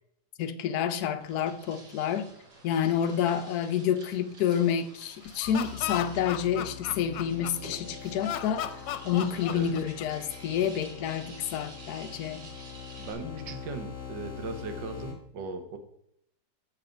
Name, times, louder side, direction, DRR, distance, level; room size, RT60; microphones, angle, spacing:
voice 1, 0.4-2.3 2.6-8.7 9.0-12.5 13.2-13.5, left 9 dB, 65° left, 1.0 m, -29 dB
sound 1, 1.1-13.1, right 2 dB, 65° right, 2.2 m, -50 dB
Laughter, 5.3-7.8 8.2-10.3, left 11 dB, 90° left, 1.3 m, -35 dB
sound 2, 5.4-15.1, left 8 dB, 40° left, 2.2 m, -44 dB
voice 2, 13.0-15.8, right 3 dB, 85° right, 1.6 m, -38 dB
7.4 x 5.8 x 5.1 m
omnidirectional pair, 2.0 m